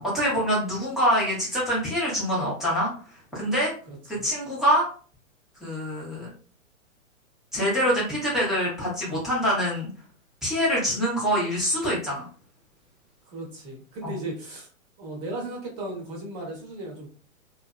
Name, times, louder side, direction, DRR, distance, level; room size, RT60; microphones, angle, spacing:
voice 1, 0.0-2.9 3.3-3.7 4.1-4.9 5.6-6.3 7.5-9.9 10.4-12.3 14.0-14.1, equal, ahead, -8 dB, 0.6 m, -25 dB
voice 2, 13.3-14.7 15.0-17.1, right 1 dB, 30° right, -2 dB, 0.9 m, -36 dB
2.5 x 2.4 x 2.2 m, 0.40 s
hypercardioid pair, 140°, 41 cm